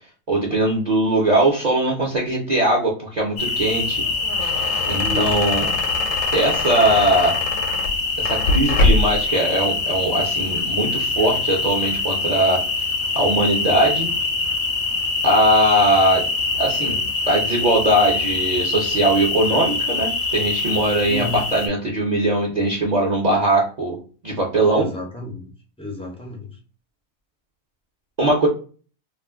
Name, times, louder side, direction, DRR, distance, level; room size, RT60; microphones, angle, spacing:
voice 1, 0.3-4.0 4.9-5.7 6.3-7.4 8.2-12.6 13.2-14.1 15.2-16.3 16.6-17.0 17.3-24.0 24.2-24.9 28.2-28.5, right 1 dB, 40° right, -3 dB, 0.7 m, -20 dB
sound 1, 3.4-21.7, left 3 dB, 50° left, 0.6 m, -24 dB
sound 2, 4.0-9.3, left 2 dB, 80° left, 1.0 m, -24 dB
voice 2, 5.0-5.4 21.1-21.4 24.7-25.5 25.8-26.5, left 2 dB, 5° left, 0 dB, 0.4 m, -31 dB
2.5 x 2.3 x 3.4 m, 0.39 s
omnidirectional pair, 1.4 m